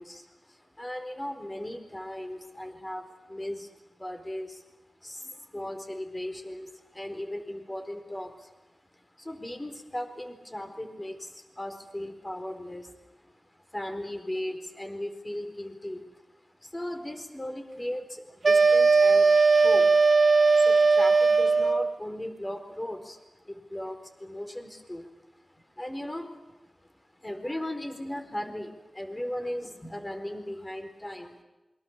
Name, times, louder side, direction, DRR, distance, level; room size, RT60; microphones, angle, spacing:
voice 1, 0.0-4.6 5.0-8.5 8.9-20.0 20.5-31.4, left 1 dB, 20° left, 7 dB, 4.2 m, -38 dB
sound 1, 18.4-21.9, right 4 dB, 60° right, 0.9 m, -19 dB
27.5 x 23.5 x 7.3 m, 1.1 s
wide cardioid pair, 65°, 0 cm